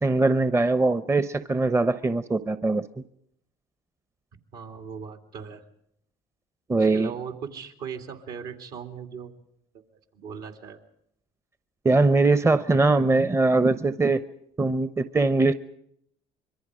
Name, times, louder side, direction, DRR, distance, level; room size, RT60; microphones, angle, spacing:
voice 1, 0.0-2.8 6.7-7.1 11.8-14.2 14.6-15.5, right 3 dB, 15° right, 13 dB, 0.8 m, -21 dB
voice 2, 4.5-5.6 6.7-9.3 9.7-9.8 10.1-10.8, right 6 dB, 70° right, 5 dB, 2.8 m, -38 dB
26.0 x 22.5 x 5.0 m, 0.72 s
supercardioid pair, 75°, 16 cm